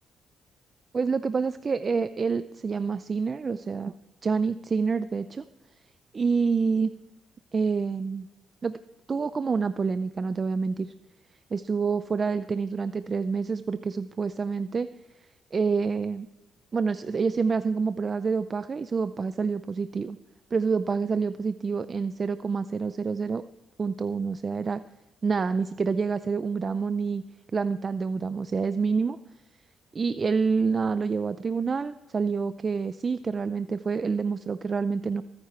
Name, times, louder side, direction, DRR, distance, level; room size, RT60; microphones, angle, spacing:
voice 1, 0.9-4.0 4.2-5.5 6.1-6.9 7.5-8.3 8.6-8.8 9.1-10.9 11.5-14.9 15.5-16.3 16.7-20.2 20.5-23.4 23.8-24.8 25.2-27.2 27.5-29.2 29.9-35.2, right 5 dB, 35° right, 13 dB, 0.5 m, -27 dB
22.5 x 9.7 x 4.5 m, 1.1 s
cardioid pair, 90°, 0 cm